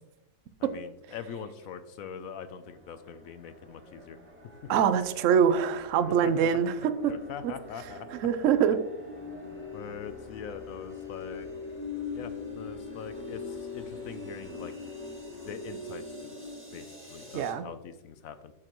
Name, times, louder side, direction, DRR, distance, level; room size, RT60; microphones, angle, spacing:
voice 1, 0.6-4.2 6.2-6.5 7.1-8.3 9.7-11.5 12.1-14.7 15.4-16.3 16.7-18.5, left 7 dB, 70° left, 11 dB, 0.9 m, -43 dB
sound 1, 2.6-17.5, left 4 dB, 5° right, 1.8 m, -42 dB
voice 2, 4.7-6.7 8.2-8.8 17.3-17.7, right 8 dB, 65° right, 11 dB, 0.9 m, -24 dB
8.7 x 6.4 x 3.0 m, 0.94 s
omnidirectional pair, 1.7 m